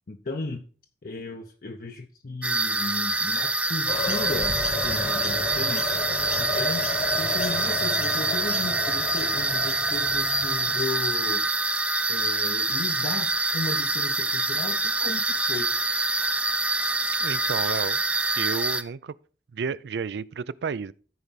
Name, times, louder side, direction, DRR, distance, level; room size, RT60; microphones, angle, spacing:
voice 1, 0.1-0.6 1.0-6.0 6.4-11.4 12.1-15.7, left 3 dB, 55° left, 0.7 m, -35 dB
sound 1, 2.4-18.8, right 2 dB, 5° right, 0.4 m, -26 dB
sound 2, 3.9-10.8, left 2 dB, 35° left, 1.1 m, -32 dB
voice 2, 17.2-18.0 18.4-19.1 19.5-20.9, right 5 dB, 70° right, 0.4 m, -31 dB
14.0 x 4.6 x 4.1 m
head